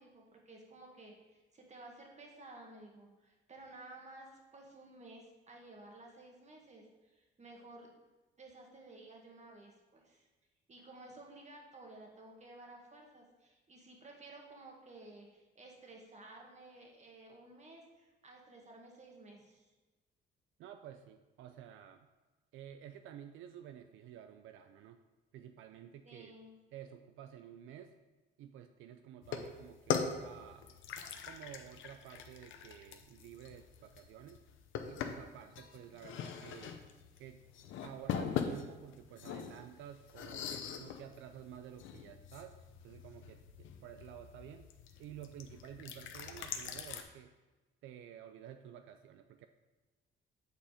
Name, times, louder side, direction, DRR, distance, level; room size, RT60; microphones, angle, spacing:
voice 1, 0.0-7.9 8.4-10.3 10.7-19.7 26.0-26.5, right 2 dB, 35° right, 0 dB, 1.7 m, -54 dB
voice 2, 20.6-22.1 22.5-25.0 25.3-26.3 26.7-28.0 28.4-30.7 31.3-34.4 34.8-36.8 37.2-37.4 37.8-42.6 42.8-47.3 47.8-49.5, right 10 dB, 85° right, 8 dB, 0.4 m, -51 dB
sound 1, 29.2-47.0, left 7 dB, 80° left, 0.7 m, -42 dB
8.0 x 4.3 x 4.9 m, 1.2 s
cardioid pair, 90°, 20 cm